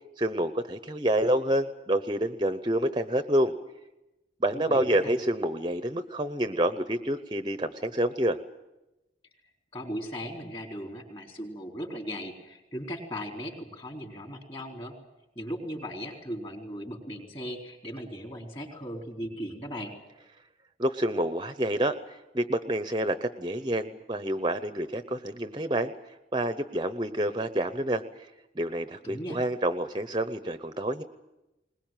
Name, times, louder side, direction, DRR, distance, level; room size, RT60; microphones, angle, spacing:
voice 1, 0.2-3.5 4.4-8.4 20.8-25.9 26.3-28.0 28.6-31.0, right 1 dB, 25° right, 11 dB, 0.7 m, -28 dB
voice 2, 4.5-5.1 9.7-14.9 15.4-19.9 29.0-29.4, equal, 30° left, 3 dB, 4.0 m, -37 dB
21.5 x 20.0 x 9.1 m, 0.96 s
head